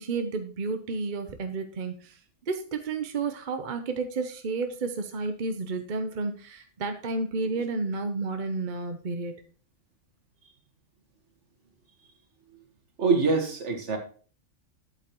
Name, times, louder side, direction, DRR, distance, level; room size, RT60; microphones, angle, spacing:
voice 1, 0.0-2.1 2.5-9.4, right 3 dB, 45° right, 7 dB, 0.8 m, -31 dB
voice 2, 13.0-14.0, right 4 dB, 65° right, 4 dB, 1.8 m, -24 dB
8.2 x 8.0 x 3.0 m, 0.40 s
omnidirectional pair, 1.3 m